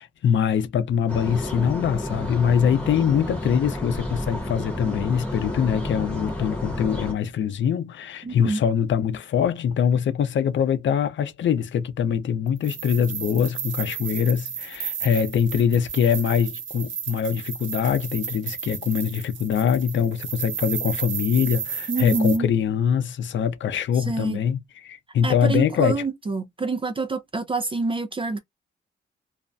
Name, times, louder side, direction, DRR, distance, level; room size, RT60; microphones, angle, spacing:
voice 1, 0.0-26.0, left 8 dB, 70° left, 0.6 m, -23 dB
sound 1, 1.1-7.1, left 1 dB, 5° left, 1.0 m, -31 dB
voice 2, 8.2-8.6 21.9-22.5 24.1-24.4 25.2-28.4, right 3 dB, 25° right, 0.5 m, -26 dB
sound 2, 12.6-22.4, right 7 dB, 70° right, 0.7 m, -33 dB
2.4 x 2.1 x 2.5 m
cardioid pair, 90°, 20 cm